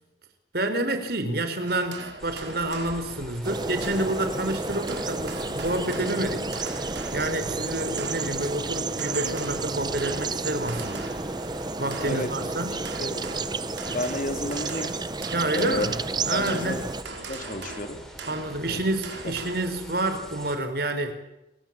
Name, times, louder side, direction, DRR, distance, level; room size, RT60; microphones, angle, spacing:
voice 1, 0.5-11.1 11.4-12.8 15.3-16.0 16.2-16.9 18.3-21.1, right 1 dB, 55° right, 8 dB, 4.4 m, -29 dB
sound 1, 1.7-19.7, right 3 dB, 75° right, 4.5 m, -42 dB
sound 2, 2.2-20.6, equal, 5° left, 5.1 m, -44 dB
sound 3, 3.4-17.0, right 3 dB, 25° right, 0.9 m, -31 dB
voice 2, 12.7-13.3 13.9-15.0 15.5-15.9 16.3-16.8 17.2-18.0 18.7-18.8, left 1 dB, 45° left, 7 dB, 3.5 m, -31 dB
29.0 x 23.5 x 7.5 m, 0.94 s
head